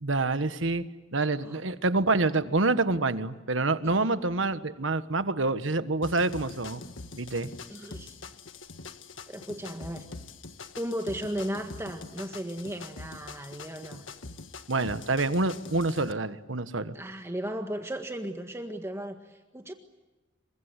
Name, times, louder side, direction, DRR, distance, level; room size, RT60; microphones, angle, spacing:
voice 1, 0.0-0.8 1.1-6.8 7.2-7.5 14.7-16.9, right 3 dB, 75° right, 12 dB, 1.4 m, -27 dB
sound 1, 6.0-16.1, left 3 dB, 85° left, 1.5 m, -44 dB
voice 2, 7.7-8.2 9.3-10.1 10.8-14.0 16.9-19.7, equal, 15° right, 4 dB, 1.7 m, -36 dB
28.0 x 24.0 x 8.2 m, 1.2 s
head